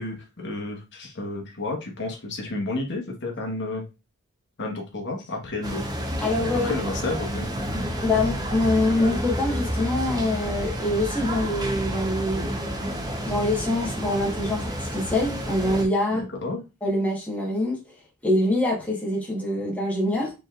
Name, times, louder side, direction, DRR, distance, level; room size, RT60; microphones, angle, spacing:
voice 1, 0.0-3.8 4.6-5.9 6.6-7.5 8.1-8.2 16.1-16.6, left 2 dB, 55° left, 0 dB, 1.1 m, -31 dB
sound 1, 5.6-15.9, equal, 20° right, 0.7 m, -30 dB
voice 2, 6.2-6.7 8.0-12.5 13.2-16.2 16.8-17.8 18.2-20.3, left 1 dB, 5° left, -3 dB, 1.2 m, -24 dB
5.3 x 3.2 x 2.4 m, 0.27 s
head